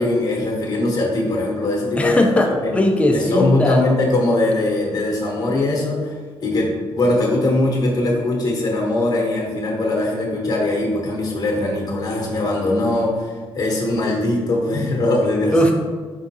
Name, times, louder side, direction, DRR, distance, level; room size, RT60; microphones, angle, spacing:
voice 1, 0.0-2.2 2.6-2.7 3.1-6.1 6.4-15.6, left 2 dB, 40° left, -2 dB, 1.0 m, -21 dB
voice 2, 2.0-3.8 15.5-15.7, left 1 dB, 15° left, 2 dB, 0.5 m, -18 dB
4.6 x 3.6 x 2.7 m, 1.5 s
cardioid pair, 95°, 10 cm